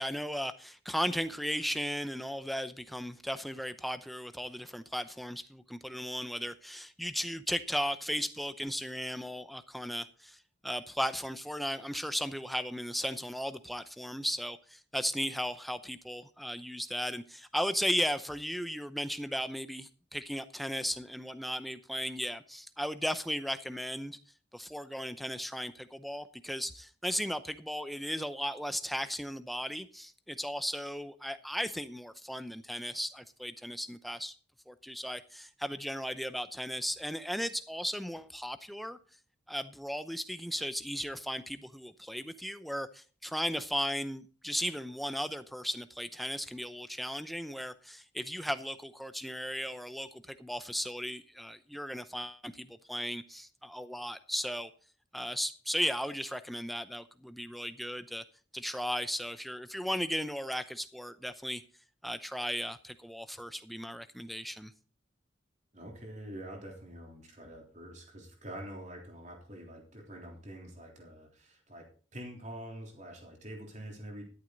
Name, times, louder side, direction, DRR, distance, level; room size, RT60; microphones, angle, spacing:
voice 1, 0.0-24.2 24.5-34.3 34.7-39.0 39.5-54.7 55.1-58.2 58.5-61.6 62.0-64.7, equal, ahead, 0.7 m, -36 dB
voice 2, 65.7-74.3, right 1 dB, 40° right, 3.6 m, -46 dB
12.5 x 11.0 x 4.0 m
head